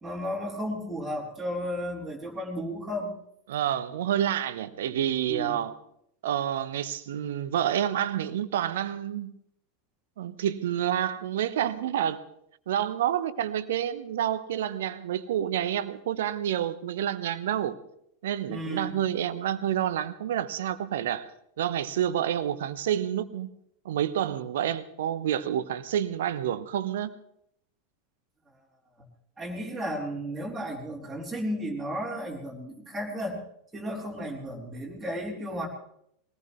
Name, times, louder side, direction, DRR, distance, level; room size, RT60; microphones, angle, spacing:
voice 1, 0.0-3.1 5.3-5.6 18.5-19.0 29.4-33.4 33.7-35.7, equal, 10° right, 4.1 m, -33 dB
voice 2, 3.5-5.7 6.2-9.3 10.2-12.2 12.7-17.8 18.2-21.3 21.6-23.5 23.8-27.1, right 10 dB, 60° right, 0.9 m, -28 dB
22.5 x 18.5 x 3.2 m
figure-of-eight pair, 85°, 0 cm